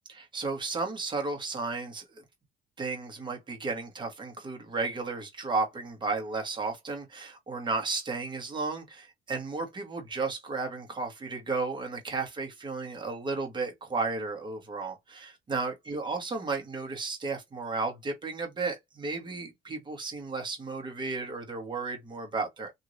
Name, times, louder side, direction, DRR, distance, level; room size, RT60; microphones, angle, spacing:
voice 1, 0.1-2.2 2.8-22.7, right 3 dB, 25° right, 1.4 m, -33 dB
3.0 x 2.8 x 2.6 m
cardioid pair, 110°, 17 cm